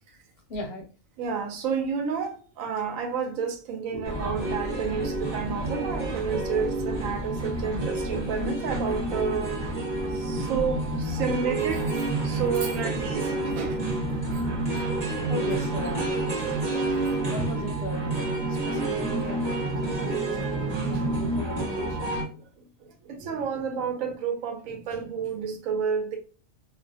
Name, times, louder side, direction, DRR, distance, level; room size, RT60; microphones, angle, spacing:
voice 1, 0.5-0.9 3.9-4.1 15.3-16.2 17.3-20.5 20.9-22.1, left 2 dB, 65° left, 0.7 m, -37 dB
voice 2, 1.2-9.5 10.1-13.9 14.3-14.4 17.2-17.4 23.0-26.2, right 6 dB, 85° right, 1.0 m, -30 dB
sound 1, 4.0-22.2, right 2 dB, 25° right, 0.7 m, -29 dB
2.4 x 2.1 x 2.6 m
omnidirectional pair, 1.3 m